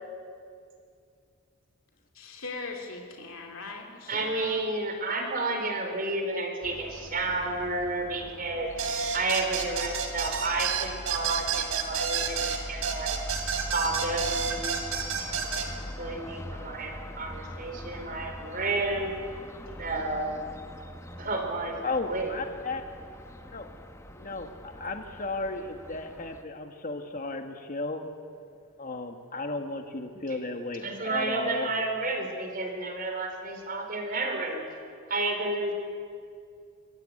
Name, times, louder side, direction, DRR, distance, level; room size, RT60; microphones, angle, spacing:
voice 1, 2.1-4.6 21.1-21.2, left 3 dB, 65° left, 2 dB, 2.7 m, -40 dB
voice 2, 4.1-8.7 9.1-13.2 13.7-15.7 16.0-19.2 19.8-20.4 21.2-22.3 30.3-30.4 30.8-34.6 35.1-35.7, right 2 dB, 40° right, 4 dB, 4.4 m, -31 dB
sound 1, 6.6-26.4, equal, 15° left, 1.0 m, -43 dB
sound 2, 8.8-15.7, right 6 dB, 75° right, 3.1 m, -30 dB
voice 3, 21.8-22.8 23.5-23.7 24.1-28.0 28.8-31.7, left 3 dB, 40° left, 5 dB, 1.5 m, -34 dB
25.0 x 20.5 x 9.8 m, 2.3 s
head